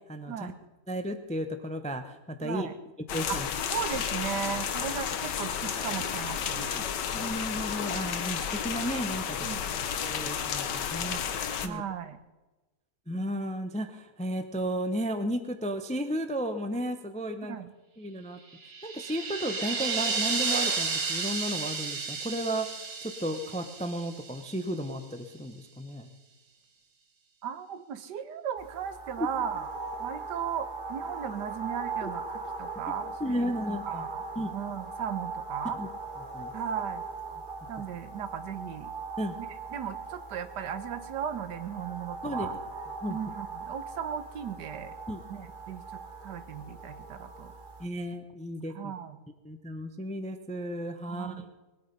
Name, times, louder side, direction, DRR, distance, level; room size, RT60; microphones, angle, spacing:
voice 1, 0.1-0.5 0.9-2.7 3.1-3.5 6.6-6.8 7.1-9.5 10.0-11.2 11.6-11.8 13.1-17.6 18.0-18.4 18.8-22.7 23.0-26.1 29.2-29.3 32.0-32.1 33.2-34.0 34.4-34.5 35.8-35.9 36.3-36.5 39.2-39.3 42.2-42.5 43.0-43.2 45.1-45.2 47.8-48.9 49.4-51.5, equal, 10° left, 8 dB, 0.5 m, -33 dB
voice 2, 2.4-2.7 3.3-3.4 3.7-6.8 9.4-9.8 11.6-12.2 17.4-17.7 27.4-29.7 30.0-33.5 33.8-34.2 34.5-35.8 36.5-37.0 37.7-38.9 39.7-42.6 43.1-44.9 45.3-47.5 48.7-49.2 51.1-51.4, right 8 dB, 80° right, 11 dB, 1.6 m, -36 dB
sound 1, 3.1-11.7, left 8 dB, 85° left, 1.6 m, -32 dB
sound 2, 18.5-24.7, right 4 dB, 60° right, 1.8 m, -32 dB
sound 3, 28.6-47.9, right 4 dB, 30° right, 1.3 m, -40 dB
20.5 x 9.3 x 5.4 m, 1.2 s
omnidirectional pair, 1.8 m